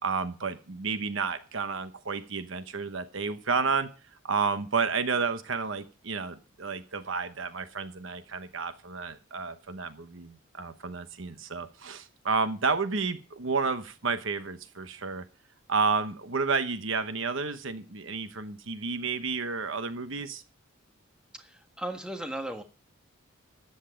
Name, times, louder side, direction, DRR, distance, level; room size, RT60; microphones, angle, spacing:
voice 1, 0.0-3.9 4.2-15.2 15.7-20.4, right 4 dB, 60° right, 10 dB, 1.0 m, -31 dB
voice 2, 21.4-22.6, right 1 dB, 5° right, 5 dB, 1.5 m, -36 dB
13.5 x 9.2 x 5.0 m, 0.34 s
head